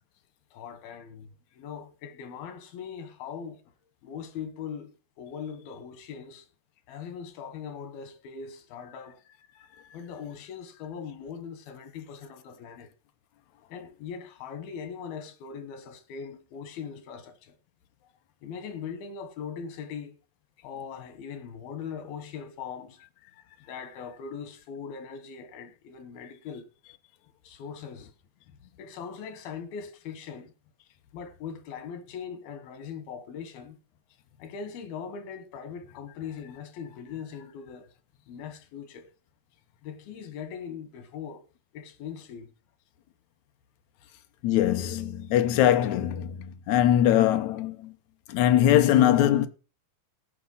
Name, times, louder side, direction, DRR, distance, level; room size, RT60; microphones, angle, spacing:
voice 1, 0.5-3.6 4.0-4.9 5.2-6.5 6.9-9.2 9.9-12.9 13.7-17.6 18.4-20.2 20.6-23.0 23.7-26.7 27.4-28.1 28.8-30.5 31.1-33.8 34.4-37.9 38.3-39.1 39.8-41.4 41.7-42.5, left 7 dB, 90° left, 3.3 m, -40 dB
voice 2, 44.4-47.9 48.3-49.5, left 11 dB, 70° left, 1.9 m, -22 dB
15.5 x 6.2 x 5.5 m
omnidirectional pair, 4.1 m